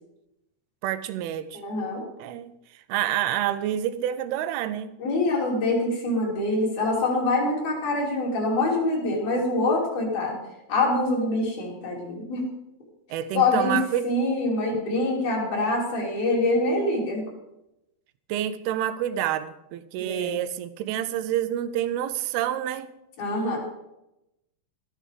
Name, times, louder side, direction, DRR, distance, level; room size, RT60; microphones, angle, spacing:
voice 1, 0.8-1.6 2.2-2.5 2.9-4.9 13.1-14.1 18.3-22.9, right 11 dB, 80° right, 2.5 m, -28 dB
voice 2, 1.5-2.0 5.0-10.4 10.7-12.4 13.3-13.8 14.0-17.2 20.0-20.4 23.2-23.6, left 2 dB, 60° left, 4.8 m, -25 dB
13.0 x 11.0 x 5.0 m
omnidirectional pair, 4.7 m